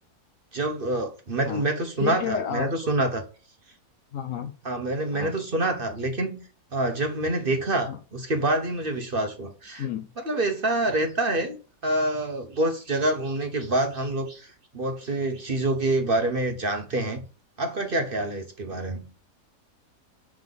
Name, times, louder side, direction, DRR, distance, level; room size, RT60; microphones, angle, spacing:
voice 1, 0.5-3.2 4.6-6.4 6.7-9.9 10.2-11.6 11.8-17.2 17.6-19.1, right 2 dB, 40° right, 1.1 m, -26 dB
voice 2, 2.0-2.9 4.1-4.5 5.1-5.4 7.9-8.0 9.8-10.1, left 8 dB, 65° left, 0.9 m, -31 dB
7.5 x 5.5 x 3.9 m
omnidirectional pair, 1.7 m